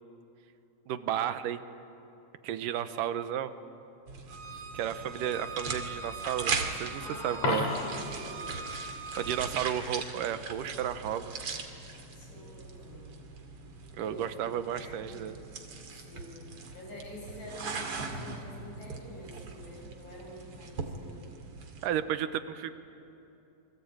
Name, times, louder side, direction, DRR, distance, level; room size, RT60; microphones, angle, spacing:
voice 1, 0.9-1.6 2.4-3.5 4.7-7.7 9.2-11.3 14.0-15.3 21.8-22.7, right 10 dB, 90° right, 11 dB, 2.6 m, -33 dB
sound 1, 4.1-21.9, right 4 dB, 50° right, 2.9 m, -40 dB
Bowed string instrument, 4.3-9.5, right 3 dB, 70° right, 2.5 m, -43 dB
voice 2, 7.0-7.5 7.8-8.7 12.1-13.1 13.9-15.2 15.9-21.2, left 1 dB, 85° left, -2 dB, 9.2 m, -47 dB
Coin (dropping), 7.3-8.2 14.3-14.4, left 3 dB, 60° left, 4.2 m, -31 dB
28.5 x 23.5 x 8.8 m, 2.9 s
omnidirectional pair, 3.7 m